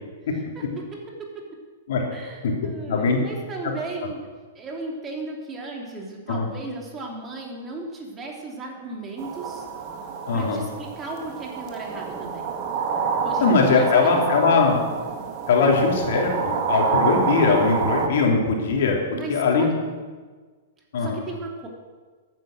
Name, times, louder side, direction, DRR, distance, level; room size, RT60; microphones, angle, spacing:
voice 1, 0.5-1.5 2.1-4.2 4.5-9.6 10.3-12.4 13.2-14.2 19.1-19.7 21.0-21.7, right 3 dB, 20° right, 0 dB, 3.1 m, -35 dB
voice 2, 2.9-3.2 6.3-6.5 10.3-10.6 13.4-14.8 15.5-19.0 19.3-19.7 20.9-21.2, left 4 dB, 60° left, 0 dB, 3.2 m, -20 dB
sound 1, 9.2-18.1, right 6 dB, 40° right, 2.0 m, -28 dB
14.5 x 9.4 x 6.4 m, 1.4 s
hypercardioid pair, 110°, 0 cm